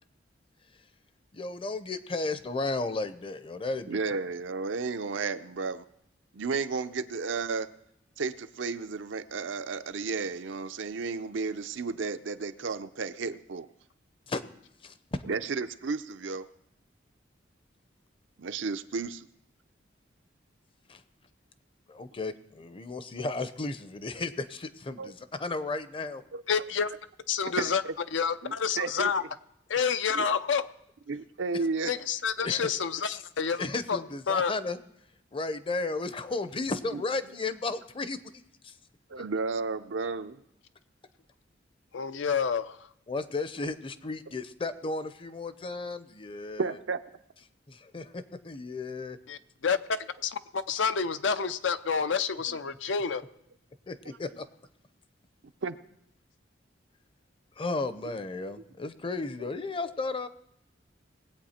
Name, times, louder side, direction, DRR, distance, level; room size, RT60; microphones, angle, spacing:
voice 1, 1.3-4.0 14.3-14.4 14.8-15.0 20.9-21.0 21.9-26.2 32.4-32.7 33.6-34.8 35.3-38.7 43.1-46.8 47.7-49.2 53.9-54.5 57.6-60.3, left 3 dB, 30° left, 13 dB, 0.6 m, -34 dB
voice 2, 3.9-5.8 6.3-7.7 8.2-13.7 15.3-16.5 18.4-19.3 25.0-25.1 26.3-26.4 27.6-27.9 28.4-29.3 30.1-30.3 31.1-31.9 36.9-37.0 39.1-40.4 46.6-47.0 52.5-52.6 55.6-55.7, right 4 dB, 85° right, 10 dB, 0.6 m, -33 dB
voice 3, 26.5-26.9 27.3-27.8 28.1-29.2 29.7-30.6 31.9-33.6 33.9-34.0 34.3-34.5 41.9-42.8 49.3-53.2, left 6 dB, 85° left, 12 dB, 0.6 m, -28 dB
20.0 x 8.2 x 4.3 m, 0.80 s
head